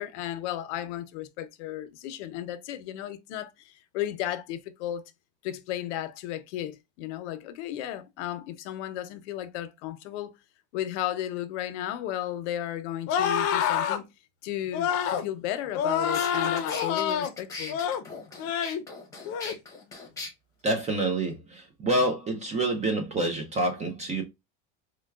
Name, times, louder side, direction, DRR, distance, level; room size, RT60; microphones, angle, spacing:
voice 1, 0.0-5.0 5.4-10.3 10.7-14.1 14.4-17.8, left 12 dB, 85° left, 0.7 m, -34 dB
sound 1, 13.1-14.0 14.7-15.3 15.7-17.3 17.7-18.0 18.4-18.8 19.2-19.5, left 8 dB, 45° left, 0.6 m, -27 dB
sound 2, 15.7-15.8 16.1-20.3, left 3 dB, 10° left, 0.9 m, -39 dB
voice 2, 20.6-24.2, right 2 dB, 20° right, 0.5 m, -27 dB
4.4 x 2.2 x 2.2 m
cardioid pair, 155°, 34 cm